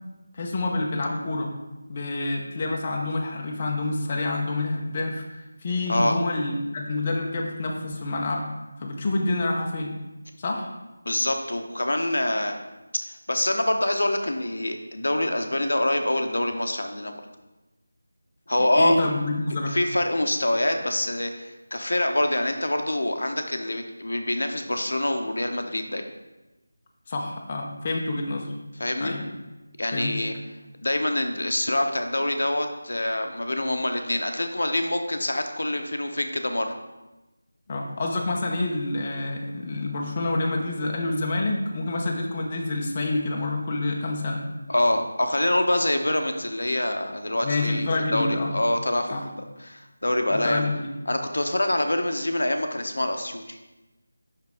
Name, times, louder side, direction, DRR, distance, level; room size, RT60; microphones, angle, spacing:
voice 1, 0.3-1.5 1.9-8.5 8.8-9.9 10.4-10.7 18.6-19.8 27.1-28.5 29.0-29.2 29.9-30.2 37.7-44.4 47.4-48.5 49.1-49.2 50.3-50.9, left 2 dB, 25° left, 0 dB, 0.7 m, -27 dB
voice 2, 11.0-12.6 13.1-17.2 18.5-19.0 19.7-26.1 28.8-29.2 29.8-30.3 30.8-36.8 44.7-49.4 49.6-50.7 51.1-53.6, left 1 dB, 80° left, 5 dB, 0.8 m, -25 dB
5.8 x 5.7 x 3.5 m, 1.1 s
figure-of-eight pair, 170°, 0 cm